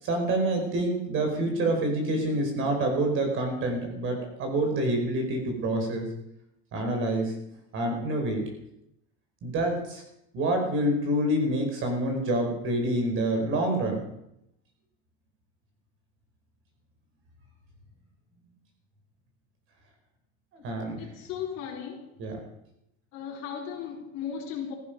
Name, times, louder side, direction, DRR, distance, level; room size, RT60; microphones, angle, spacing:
voice 1, 0.0-6.1 6.7-7.3 7.7-8.4 9.4-10.0 10.3-14.1 20.5-21.0 22.2-22.3, right 1 dB, 35° right, 3 dB, 4.7 m, -27 dB
voice 2, 21.0-22.1 23.1-24.7, left 8 dB, 50° left, -1 dB, 4.4 m, -36 dB
17.0 x 15.0 x 5.4 m, 0.81 s
cardioid pair, 170°, 34 cm